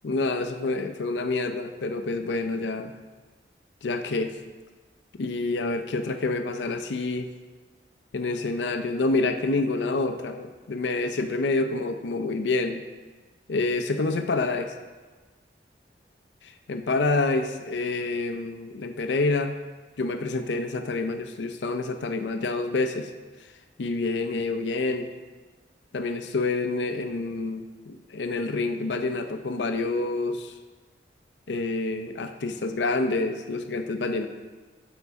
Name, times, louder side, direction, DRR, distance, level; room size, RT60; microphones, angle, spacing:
voice 1, 0.0-2.9 3.8-4.4 5.2-7.3 8.1-12.8 13.5-14.8 16.4-19.5 20.0-23.1 23.8-25.1 25.9-30.5 31.5-34.3, left 3 dB, 85° left, 7 dB, 0.5 m, -27 dB
13.5 x 5.2 x 3.5 m, 1.3 s
head